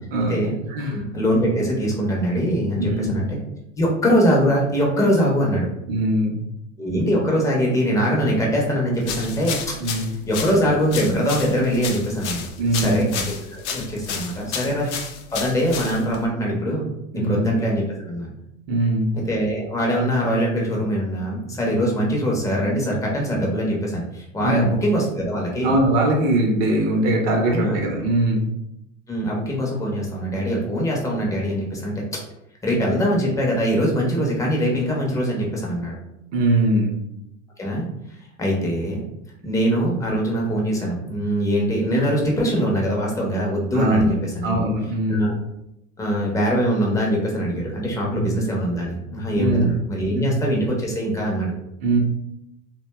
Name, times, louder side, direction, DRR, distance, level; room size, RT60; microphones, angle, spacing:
voice 1, 0.1-0.4 0.7-1.0 2.8-3.2 5.9-6.4 9.8-10.1 12.6-13.1 17.1-17.5 18.7-19.1 24.4-24.7 25.6-28.5 36.3-36.9 43.7-44.2 44.4-45.3 48.1-48.3 49.4-49.7 50.1-50.4 51.8-52.0, right 1 dB, 50° right, 1 dB, 0.7 m, -21 dB
voice 2, 0.9-3.4 3.8-5.7 6.8-9.8 10.3-12.5 12.7-14.9 15.3-16.9 17.1-18.3 19.1-25.7 27.4-27.8 29.1-32.2 32.6-35.9 37.6-37.9 38.4-39.0 39.4-44.6 45.1-45.4 46.0-51.5, equal, 10° left, -2 dB, 0.5 m, -22 dB
sound 1, 9.0-16.3, left 6 dB, 60° left, 0.5 m, -32 dB
2.6 x 2.1 x 2.2 m, 0.83 s
hypercardioid pair, 90°, 40 cm